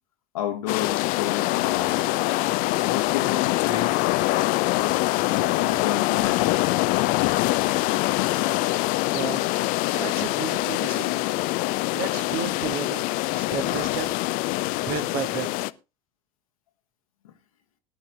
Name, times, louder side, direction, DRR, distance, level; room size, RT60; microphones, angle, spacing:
voice 1, 0.3-2.1 2.9-4.0 4.7-5.0 5.4-6.7 17.2-17.3, left 10 dB, 70° left, 1.2 m, -31 dB
sound 1, 0.7-15.7, left 19 dB, 50° left, 0.5 m, -24 dB
voice 2, 9.1-9.4 9.9-11.2 11.6-13.0 13.3-14.1 14.8-15.7, right 7 dB, 55° right, 1.7 m, -33 dB
19.0 x 10.5 x 2.4 m
figure-of-eight pair, 65°, 19 cm